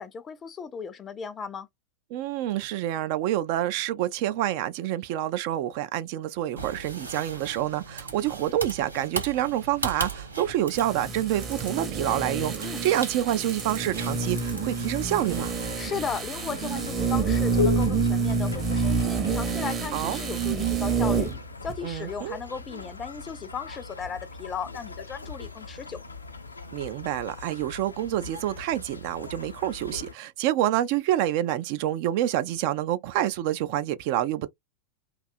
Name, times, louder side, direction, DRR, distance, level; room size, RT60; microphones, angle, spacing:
voice 1, 0.0-1.7 12.6-12.8 15.8-21.3 21.6-26.0, left 6 dB, 20° left, 0.4 m, -36 dB
voice 2, 2.1-15.5 19.9-20.2 21.8-22.4 26.7-34.5, right 12 dB, 45° right, 0.3 m, -27 dB
sound 1, 6.6-15.7, right 3 dB, 80° right, 0.8 m, -38 dB
sound 2, 10.7-21.4 21.7-21.8, right 4 dB, 20° right, 0.7 m, -28 dB
sound 3, 14.1-30.1, left 4 dB, 80° left, 0.5 m, -38 dB
2.6 x 2.3 x 2.4 m
figure-of-eight pair, 90°, 0 cm